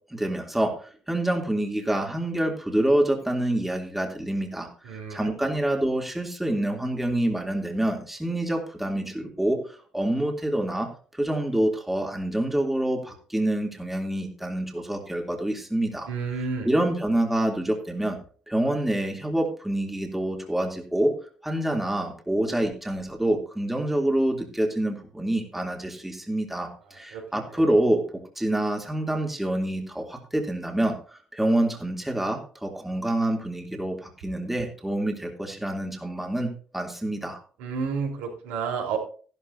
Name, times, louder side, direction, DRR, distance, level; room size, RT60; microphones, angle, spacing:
voice 1, 0.1-0.7 1.1-16.1 16.6-18.2 18.5-21.2 21.4-31.0 31.3-37.4, right 1 dB, 5° right, 2 dB, 3.1 m, -27 dB
voice 2, 4.9-5.3 16.1-16.7 27.1-27.2 37.6-39.0, right 5 dB, 70° right, 0 dB, 4.1 m, -30 dB
14.5 x 12.5 x 2.8 m, 0.41 s
hypercardioid pair, 50°, 3 cm